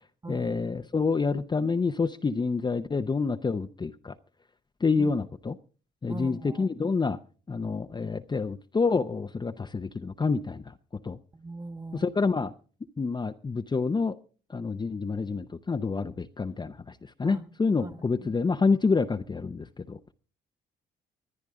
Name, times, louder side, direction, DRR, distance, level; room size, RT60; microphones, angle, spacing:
voice 1, 0.3-4.1 4.8-5.5 6.0-7.2 7.5-10.7 11.0-11.2 11.9-12.5 13.0-14.1 14.5-20.0, left 4 dB, 20° left, 7 dB, 0.6 m, -28 dB
voice 2, 6.1-6.7 11.3-12.1 17.2-17.5 17.8-18.4, right 2 dB, 20° right, 9 dB, 1.5 m, -40 dB
24.5 x 9.8 x 3.7 m, 0.38 s
cardioid pair, 90°, 20 cm